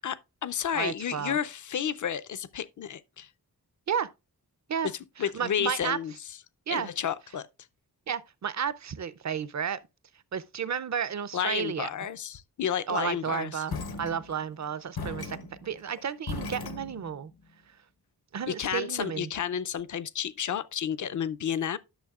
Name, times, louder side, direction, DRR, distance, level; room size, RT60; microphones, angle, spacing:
voice 1, 0.0-3.3 5.2-6.1 6.7-7.5 11.3-13.6 18.5-21.8, left 9 dB, 50° left, 0.5 m, -31 dB
voice 2, 0.7-1.4 3.9-4.1 4.7-4.9 5.2-6.0 6.7-6.9 8.1-9.8 10.3-11.9 12.9-17.3 17.7-17.8 18.3-19.3, right 7 dB, 50° right, 0.5 m, -32 dB
sound 1, 13.7-14.6 15.0-17.3, left 3 dB, 70° left, 1.1 m, -37 dB
11.5 x 6.4 x 2.4 m
wide cardioid pair, 105°, 38 cm